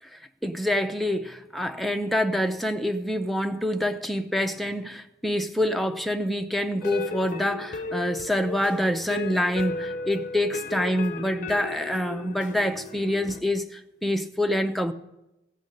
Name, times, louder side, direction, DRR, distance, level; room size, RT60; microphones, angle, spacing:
voice 1, 0.4-14.9, left 1 dB, ahead, 0.5 m, -26 dB
sound 1, 6.8-13.4, left 2 dB, 45° left, 0.6 m, -35 dB
15.5 x 5.2 x 8.5 m
head